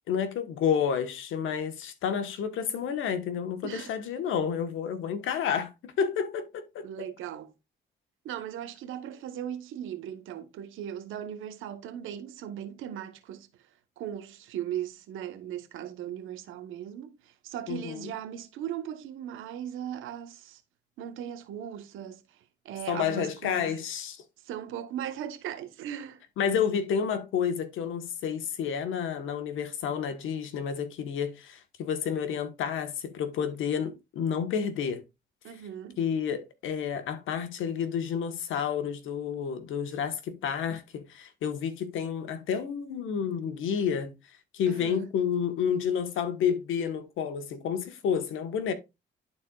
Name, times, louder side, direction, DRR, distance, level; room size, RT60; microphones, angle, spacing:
voice 1, 0.1-6.9 17.7-18.1 22.9-24.2 26.4-35.0 36.0-44.1 44.5-48.7, left 7 dB, 80° left, 1.3 m, -30 dB
voice 2, 3.6-3.9 6.8-7.5 8.2-13.5 14.0-20.6 21.0-23.8 24.4-26.2 35.4-36.0 44.7-45.1, right 10 dB, 85° right, 1.0 m, -38 dB
12.0 x 4.3 x 2.3 m
cardioid pair, 90°, 20 cm